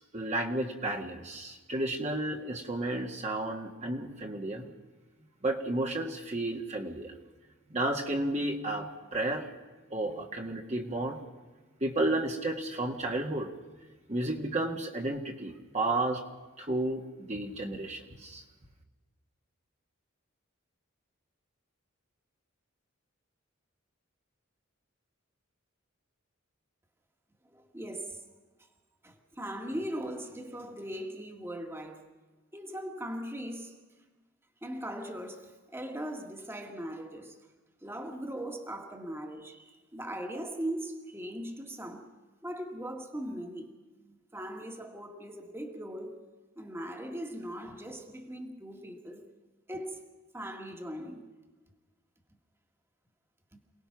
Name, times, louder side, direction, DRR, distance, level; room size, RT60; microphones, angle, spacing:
voice 1, 0.0-4.6 5.4-7.1 7.7-9.5 9.9-11.2 11.8-13.5 14.1-16.2 16.6-17.0 17.3-18.4, right 2 dB, 35° right, 1.7 m, -32 dB
voice 2, 27.5-28.2 29.0-32.0 32.5-33.7 34.6-37.4 37.8-42.1 42.4-43.7 44.0-46.2 46.6-49.2 49.7-50.0 50.3-51.3 53.5-53.6, right 1 dB, 10° right, 1.9 m, -39 dB
28.0 x 19.0 x 6.0 m
head